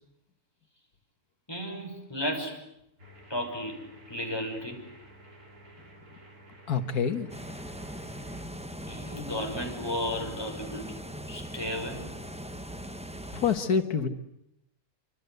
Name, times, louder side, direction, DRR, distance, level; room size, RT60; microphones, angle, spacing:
voice 1, 1.5-2.6 3.3-3.8 4.1-4.8 8.9-11.0 11.3-12.1, left 1 dB, 15° left, 2 dB, 6.0 m, -34 dB
sound 1, 3.0-8.4, right 1 dB, 75° right, 4.5 m, -52 dB
voice 2, 6.7-7.3 13.3-14.1, left 6 dB, 90° left, 7 dB, 2.0 m, -26 dB
sound 2, 7.3-13.6, equal, 5° right, 1.1 m, -40 dB
27.5 x 25.5 x 8.1 m, 0.81 s
omnidirectional pair, 1.6 m